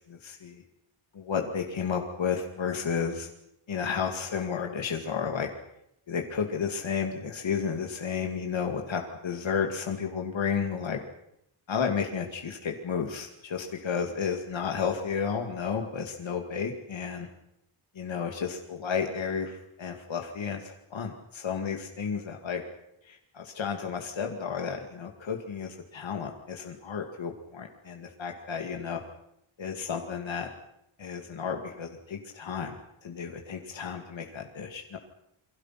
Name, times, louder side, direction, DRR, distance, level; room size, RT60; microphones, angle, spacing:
voice 1, 0.1-0.6 1.1-3.3 3.7-5.5 6.1-11.0 11.7-17.3 17.9-22.6 23.0-29.0 29.6-30.5 31.0-35.0, left 6 dB, 65° left, 3 dB, 2.4 m, -32 dB
28.5 x 23.5 x 5.9 m, 0.78 s
wide cardioid pair, 175°, 50 cm